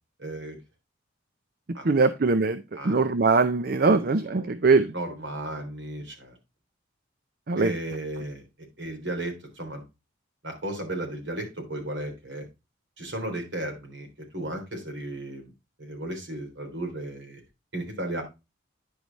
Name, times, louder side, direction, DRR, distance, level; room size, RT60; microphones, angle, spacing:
voice 1, 0.2-0.6 1.7-2.1 2.7-3.0 3.8-4.0 4.3-4.6 4.9-6.4 7.6-8.4 8.8-9.8 10.4-12.5 13.0-14.1 14.3-15.5 15.8-17.4 17.7-18.2, right 1 dB, 65° right, 3.6 m, -35 dB
voice 2, 1.8-4.9 7.5-7.7, right 4 dB, 50° right, 0.5 m, -22 dB
10.5 x 4.9 x 4.0 m
head